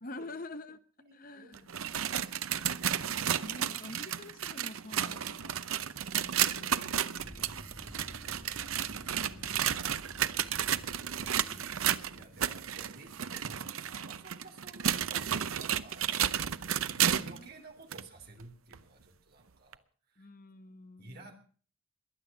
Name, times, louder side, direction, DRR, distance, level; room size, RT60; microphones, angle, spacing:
voice 1, 0.0-0.8 1.1-1.6 3.4-5.6 6.5-7.9 8.8-9.7 11.5-11.6 12.1-12.4 16.8-17.5 20.2-21.3, left 2 dB, 40° left, 10 dB, 1.0 m, -48 dB
voice 2, 1.0-1.6 3.4-3.9 11.1-11.4 12.1-16.1 16.9-20.3 21.0-21.3, right 2 dB, 45° right, 4 dB, 3.3 m, -53 dB
sound 1, 1.5-17.4 17.9-18.0 18.7-18.8 19.7-19.8, right 9 dB, 85° right, 0.7 m, -32 dB
sound 2, 7.2-13.4, equal, 10° left, 3.5 m, -52 dB
22.0 x 8.4 x 7.1 m, 0.43 s
head